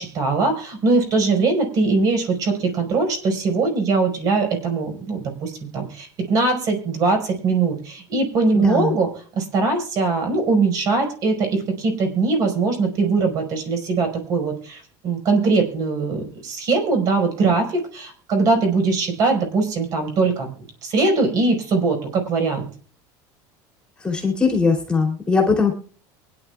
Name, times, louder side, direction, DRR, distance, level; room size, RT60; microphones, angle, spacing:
voice 1, 0.0-9.1 9.3-20.5 20.8-22.7, right 3 dB, 40° right, 5 dB, 5.0 m, -21 dB
voice 2, 8.5-8.9 24.0-25.7, left 4 dB, 10° left, -1 dB, 2.7 m, -20 dB
23.5 x 10.5 x 2.4 m, 0.42 s
cardioid pair, 170°, 10 cm